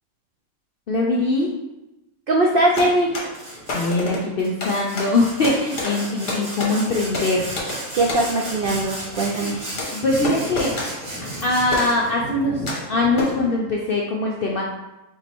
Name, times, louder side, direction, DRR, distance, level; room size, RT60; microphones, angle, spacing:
voice 1, 0.9-1.5 3.7-7.5 9.2-9.5 9.9-10.8 11.4-12.6 12.9-14.6, left 2 dB, 65° left, -3 dB, 0.5 m, -22 dB
voice 2, 2.3-3.1 7.9-9.6, right 1 dB, 70° right, -2 dB, 0.5 m, -20 dB
sound 1, 2.4-13.6, left 1 dB, 40° left, 1.0 m, -31 dB
Sawing, 3.3-4.0 4.4-12.1, right 1 dB, 55° right, 1.6 m, -35 dB
3.7 x 3.0 x 4.4 m, 0.98 s
omnidirectional pair, 1.5 m